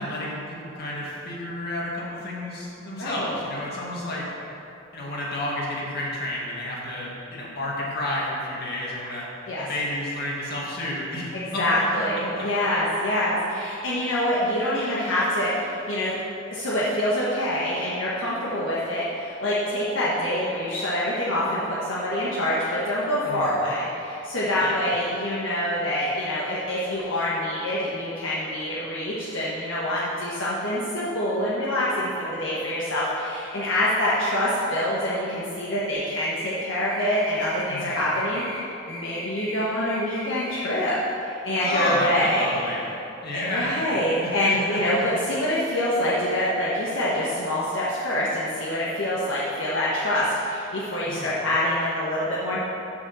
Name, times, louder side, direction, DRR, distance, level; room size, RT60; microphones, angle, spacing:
voice 1, 0.0-4.3 4.9-9.3 9.6-11.6 12.1-12.5 23.2-23.5 24.6-24.7 37.7-38.0 41.6-42.9 43.2-43.9 44.2-45.1 51.0-51.3, left 1 dB, 55° left, -4 dB, 2.0 m, -31 dB
voice 2, 3.0-3.4 9.5-9.7 11.3-16.1 16.5-42.6 43.3-52.6, left 1 dB, 75° left, -8 dB, 1.3 m, -25 dB
sound 1, 35.9-36.6 36.9-37.6 37.9-38.6 38.9-39.6 39.9-40.6, equal, 20° left, 1.7 m, -38 dB
7.0 x 6.3 x 7.0 m, 2.9 s
head